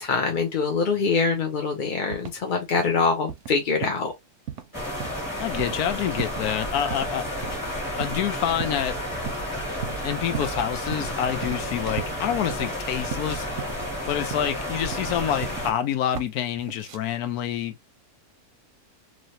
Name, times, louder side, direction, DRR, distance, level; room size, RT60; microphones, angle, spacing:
voice 1, 0.0-4.1, left 4 dB, 55° left, 0.5 m, -24 dB
sound 1, 2.1-2.5 2.8-3.0 3.3-3.5 3.8-4.1 4.5-4.7 5.0-5.3 5.6-5.8 6.2-6.5 6.9-7.1 7.4-7.6 8.0-8.2 8.6-8.9 9.3-9.5 9.8-10.6 10.9-11.1 11.4-11.7 12.0-12.8 13.1-13.9 14.3-14.6 14.9-15.8 16.1-16.3 16.6-17.0, right 9 dB, 65° right, 0.9 m, -36 dB
sound 2, 4.7-15.7, equal, 15° left, 1.6 m, -31 dB
voice 2, 5.4-7.3 8.0-9.0 10.0-13.5 14.1-17.7, left 10 dB, 90° left, 1.1 m, -27 dB
3.1 x 2.7 x 2.6 m
omnidirectional pair, 1.6 m